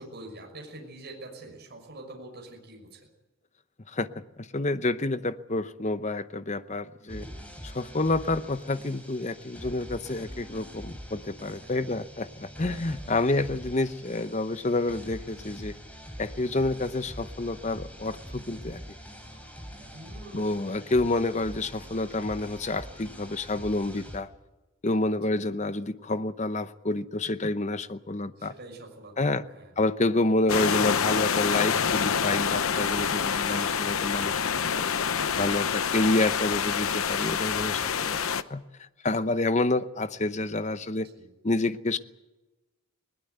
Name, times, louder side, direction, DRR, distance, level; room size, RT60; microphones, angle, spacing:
voice 1, 0.0-3.1 7.1-7.4 11.6-12.0 12.6-13.2 19.9-20.5 25.0-25.5 28.4-29.7 41.1-41.3, right 1 dB, 45° right, 1 dB, 6.0 m, -46 dB
voice 2, 4.4-7.2 7.6-15.8 16.2-18.8 20.3-24.3 24.8-28.5 29.2-29.4 29.8-34.4 34.8-34.9 35.3-38.2 38.5-38.6 39.0-41.1 41.4-42.0, left 2 dB, 30° left, 12 dB, 0.8 m, -28 dB
sound 1, 7.1-24.2, equal, 5° left, 3.8 m, -44 dB
sound 2, 30.5-38.4, left 7 dB, 70° left, 0.8 m, -27 dB
21.0 x 19.5 x 8.0 m, 1.1 s
head